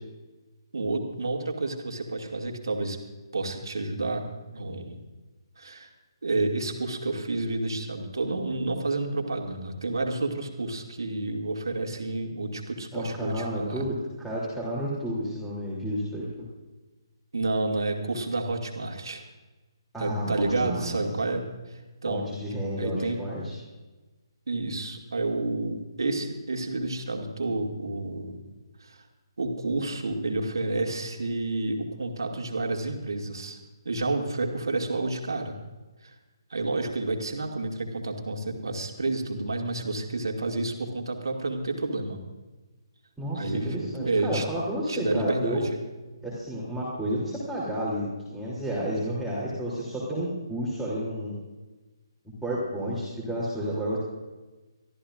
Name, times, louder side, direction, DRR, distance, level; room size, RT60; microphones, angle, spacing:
voice 1, 0.7-3.0 3.3-4.2 4.5-5.0 5.6-5.9 6.2-13.8 17.3-19.2 20.0-22.3 22.8-23.2 24.5-28.4 28.8-29.0 29.4-33.6 33.8-35.6 36.0-36.2 36.5-42.2 43.3-44.4 44.9-45.8, right 2 dB, 60° right, 2 dB, 2.4 m, -30 dB
voice 2, 12.9-16.3 19.9-21.0 22.1-23.5 43.2-45.6 46.2-51.4 52.4-54.0, equal, ahead, -9 dB, 3.1 m, -31 dB
24.5 x 14.0 x 2.6 m, 1.2 s
figure-of-eight pair, 140°, 3 cm